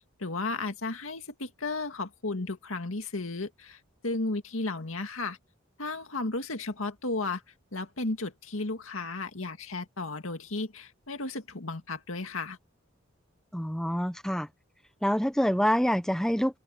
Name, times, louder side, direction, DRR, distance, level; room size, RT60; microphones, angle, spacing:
voice 1, 0.0-5.4 5.8-7.4 7.7-12.6, left 3 dB, 75° left, 2.1 m, -34 dB
voice 2, 13.5-14.5 15.0-16.6, equal, 5° left, 1.1 m, -26 dB
open air
head